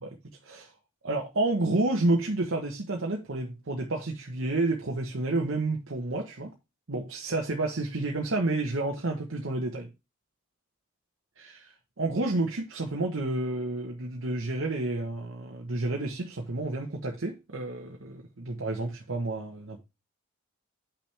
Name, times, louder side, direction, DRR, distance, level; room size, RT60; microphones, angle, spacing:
voice 1, 1.0-6.5 6.9-9.9 11.4-19.8, right 2 dB, 70° right, 1.0 m, -30 dB
8.5 x 6.0 x 3.3 m
head